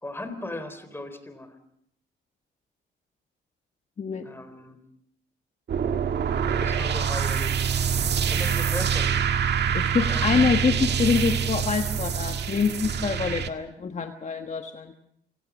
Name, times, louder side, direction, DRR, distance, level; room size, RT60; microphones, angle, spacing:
voice 1, 0.0-1.6 4.2-4.8 6.6-7.6 8.2-9.2 10.0-10.4, left 1 dB, 10° left, 10 dB, 3.9 m, -37 dB
sound 1, 5.7-13.5, right 7 dB, 60° right, 1.8 m, -25 dB
voice 2, 9.7-14.9, left 5 dB, 35° left, 6 dB, 1.4 m, -25 dB
27.0 x 18.0 x 6.2 m, 0.74 s
cardioid pair, 90°, 20 cm